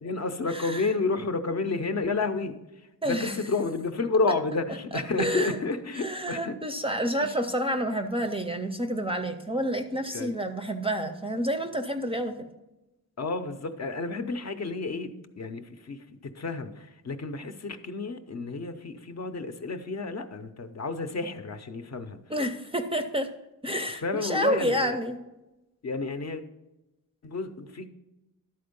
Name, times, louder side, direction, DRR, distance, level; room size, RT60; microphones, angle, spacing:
voice 1, 0.0-6.6 7.2-7.4 10.1-10.3 13.2-22.2 23.9-25.0 25.8-26.4 27.2-27.9, left 3 dB, 45° left, 8 dB, 0.6 m, -31 dB
voice 2, 0.5-0.9 3.0-3.3 4.9-5.5 6.0-12.5 22.3-23.3 23.6-25.2, equal, 15° right, 6 dB, 0.4 m, -29 dB
11.5 x 4.3 x 5.2 m, 1.0 s
wide cardioid pair, 160°, 36 cm